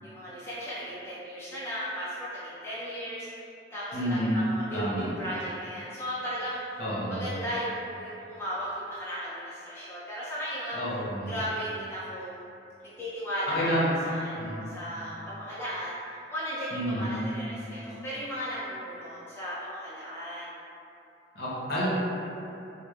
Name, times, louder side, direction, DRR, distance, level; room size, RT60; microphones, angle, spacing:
voice 1, 0.0-6.8 7.1-10.8 11.3-12.4 12.8-20.5, equal, 15° left, -10 dB, 0.3 m, -36 dB
voice 2, 3.9-4.4 4.7-5.1 6.8-7.3 10.7-11.3 13.5-13.9 14.4-14.7 16.7-17.2 21.3-21.9, equal, 60° left, -7 dB, 0.6 m, -29 dB
3.0 x 2.0 x 2.2 m, 2.7 s
head